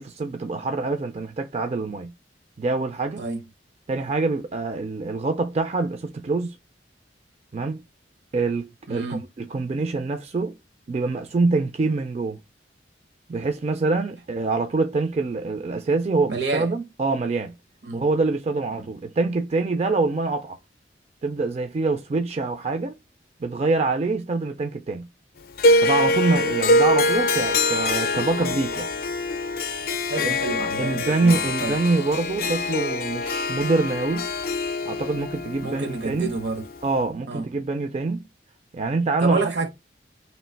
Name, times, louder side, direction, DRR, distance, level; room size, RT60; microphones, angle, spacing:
voice 1, 0.0-2.1 2.6-3.2 3.9-6.6 7.5-7.8 8.3-10.6 10.9-12.4 13.3-17.5 17.9-20.6 21.2-23.0 23.4-25.1 25.8-28.9 30.2-30.4 30.8-34.3 34.9-36.3 36.8-38.3 38.7-39.4, right 3 dB, 35° right, 0.4 m, -25 dB
voice 2, 8.9-9.2 16.3-16.7 17.8-18.0 18.7-18.9 30.1-31.8 35.6-36.7 37.3-37.5 39.2-39.7, right 3 dB, 70° right, 0.9 m, -29 dB
Harp, 25.6-36.9, left 2 dB, 55° left, 0.4 m, -24 dB
3.1 x 2.8 x 4.4 m
head